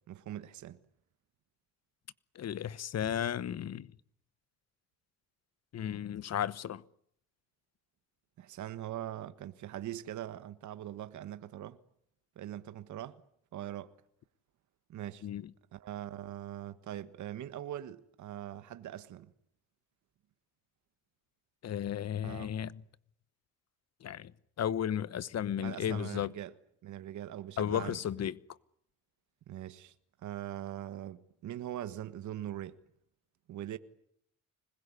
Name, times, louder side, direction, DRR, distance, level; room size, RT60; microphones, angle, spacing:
voice 1, 0.1-0.8 8.4-11.8 12.3-13.2 13.5-13.9 14.9-15.3 15.7-19.3 22.2-22.5 25.6-26.5 26.8-28.3 29.5-29.9 30.2-32.8 33.5-33.8, right 12 dB, 70° right, 1.5 m, -42 dB
voice 2, 2.3-3.9 5.7-6.8 15.2-15.4 21.6-22.8 24.0-24.3 24.6-26.3 27.6-28.3, left 9 dB, 55° left, 1.1 m, -34 dB
26.0 x 21.0 x 9.8 m
cardioid pair, 90°, 30 cm